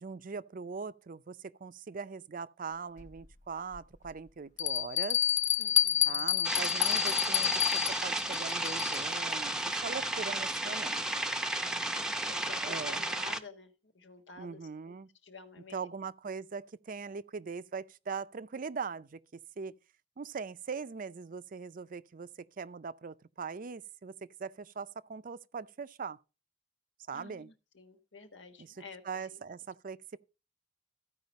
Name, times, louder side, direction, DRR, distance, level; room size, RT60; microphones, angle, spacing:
voice 1, 0.0-5.2 6.1-11.3 12.6-13.0 14.4-15.1 15.7-19.2 19.6-19.7 20.2-22.3 22.6-26.2 27.1-27.5 28.6-30.2, right 5 dB, 50° right, 0.5 m, -41 dB
Bell, 3.0-3.1 3.7-3.8 4.6-9.1, left 11 dB, 40° left, 0.6 m, -29 dB
voice 2, 5.6-6.3 11.5-14.9 15.2-15.9 27.1-29.0 29.3-29.4, left 4 dB, 90° left, 1.5 m, -51 dB
sound 1, 6.4-13.4, right 1 dB, 5° right, 0.6 m, -33 dB
14.5 x 4.9 x 5.2 m
head